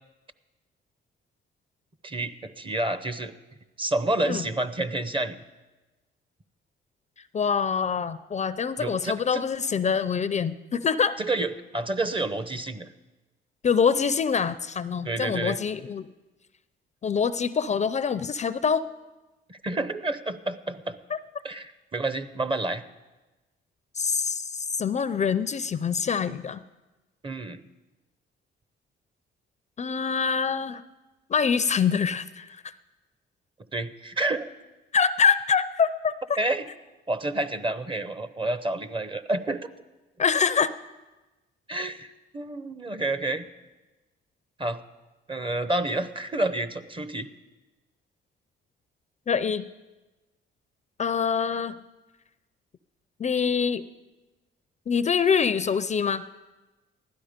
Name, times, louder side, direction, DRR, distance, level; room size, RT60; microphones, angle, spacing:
voice 1, 2.0-3.3 3.8-5.4 8.8-9.4 11.2-12.9 15.0-15.6 19.5-21.0 21.4-22.8 27.2-27.6 33.7-34.5 36.4-36.7 37.1-39.7 41.7-43.5 44.6-44.8 45.3-47.3, right 2 dB, 25° right, 13 dB, 0.8 m, -29 dB
voice 2, 7.3-11.2 13.6-16.1 17.0-18.9 21.1-21.2 24.0-26.6 29.8-30.8 31.3-32.6 34.9-36.1 40.2-40.7 49.3-49.6 51.0-51.8 53.2-53.8 54.9-56.2, left 6 dB, 35° left, 14 dB, 0.5 m, -25 dB
16.0 x 12.0 x 5.1 m, 1.2 s
cardioid pair, 90°, 20 cm